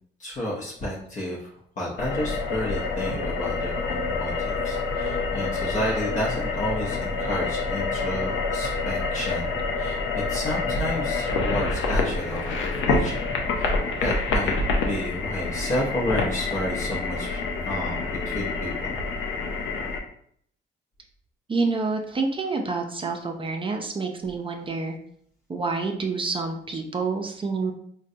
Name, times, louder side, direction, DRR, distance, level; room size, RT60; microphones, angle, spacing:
voice 1, 0.2-14.6 14.9-19.0, left 1 dB, 40° left, -4 dB, 0.8 m, -31 dB
sound 1, 2.0-20.0, left 3 dB, 75° left, 0.6 m, -27 dB
voice 2, 21.5-25.0 25.5-27.7, right 4 dB, 25° right, 3 dB, 0.5 m, -28 dB
3.8 x 2.2 x 2.6 m, 0.65 s
cardioid pair, 90°, 20 cm